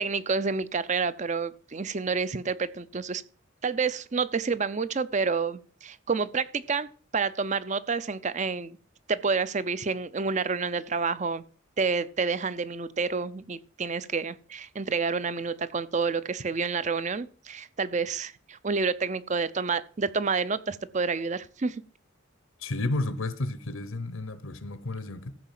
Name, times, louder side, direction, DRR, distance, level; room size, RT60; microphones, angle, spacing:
voice 1, 0.0-3.2 3.6-8.8 9.1-11.4 11.8-21.8, right 4 dB, 35° right, 0.6 m, -29 dB
voice 2, 22.6-25.3, left 2 dB, 85° left, 1.0 m, -32 dB
14.0 x 4.9 x 7.5 m
head